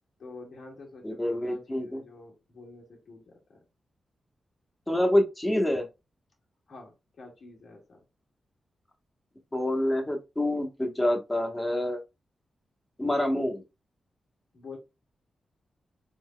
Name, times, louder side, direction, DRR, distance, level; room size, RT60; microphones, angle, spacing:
voice 1, 0.2-3.6 6.7-8.0 14.5-14.8, left 3 dB, 65° left, 1.7 m, -48 dB
voice 2, 1.0-2.0 4.9-5.8 9.5-12.0 13.0-13.6, left 1 dB, 10° left, 1.1 m, -27 dB
4.4 x 3.7 x 2.2 m
wide cardioid pair, 125°, 0 cm